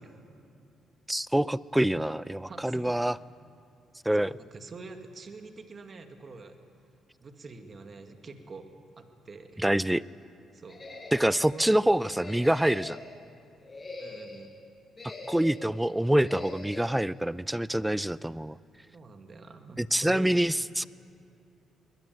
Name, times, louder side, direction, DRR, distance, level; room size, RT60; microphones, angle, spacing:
voice 1, 1.1-3.2 4.1-4.3 9.6-10.0 11.1-13.0 15.3-18.6 19.8-20.8, right 1 dB, 5° right, 18 dB, 0.5 m, -26 dB
voice 2, 2.5-3.1 4.2-6.6 7.2-9.6 10.5-10.8 11.5-11.8 14.0-14.5 18.9-20.3, right 3 dB, 40° right, 6 dB, 2.1 m, -46 dB
sound 1, 10.7-11.6 12.2-13.1 13.6-14.5 14.9-15.7 16.2-16.9, left 2 dB, 30° left, 6.5 m, -43 dB
22.0 x 21.0 x 9.5 m, 2.6 s
cardioid pair, 90°, 0 cm